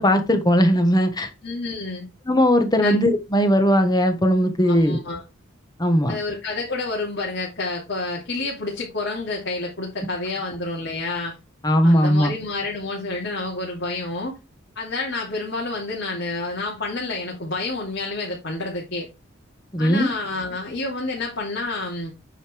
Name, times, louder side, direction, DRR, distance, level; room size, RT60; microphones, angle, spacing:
voice 1, 0.0-1.3 2.3-5.0 5.8-6.2 11.6-12.3 19.7-20.1, equal, 20° left, 1.3 m, -18 dB
voice 2, 1.4-2.1 2.8-3.0 4.6-5.2 6.1-11.3 11.8-14.4 14.8-19.1 19.8-22.1, left 3 dB, 60° left, 2.9 m, -29 dB
9.0 x 6.5 x 3.4 m
head